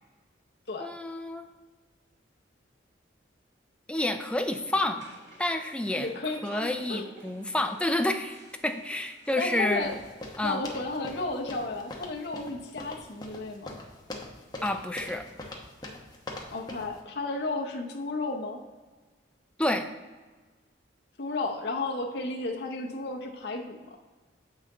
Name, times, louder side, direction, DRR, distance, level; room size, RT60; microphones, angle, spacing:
voice 1, 0.8-1.5 3.9-5.1 5.4-6.1 6.4-9.9 10.4-10.6 14.6-15.3 19.6-19.9, left 1 dB, 5° left, 6 dB, 0.4 m, -29 dB
sound 1, 4.4-10.3, right 1 dB, 75° right, 2.1 m, -54 dB
voice 2, 6.0-7.1 9.4-9.9 10.4-13.7 16.5-18.6 21.2-23.9, left 3 dB, 60° left, 0 dB, 0.8 m, -33 dB
sound 2, 9.8-17.0, left 2 dB, 20° left, 0.9 m, -42 dB
7.3 x 5.7 x 3.7 m, 1.3 s
head